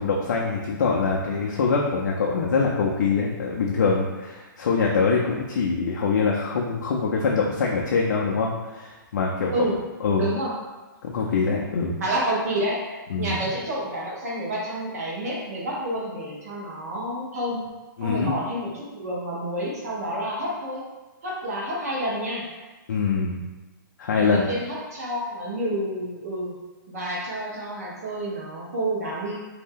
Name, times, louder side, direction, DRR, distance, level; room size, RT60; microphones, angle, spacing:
voice 1, 0.0-9.7 10.0-10.3 11.0-12.0 13.1-13.4 18.0-18.3 22.9-23.4 24.0-24.5, left 4 dB, 55° left, -2 dB, 0.4 m, -24 dB
voice 2, 10.2-10.5 12.0-12.8 13.2-17.6 18.0-20.8 21.2-22.4 24.2-26.5 26.9-29.3, right 1 dB, 45° right, -5 dB, 0.9 m, -29 dB
2.6 x 2.1 x 3.5 m, 1.2 s
hypercardioid pair, 175°, 11 cm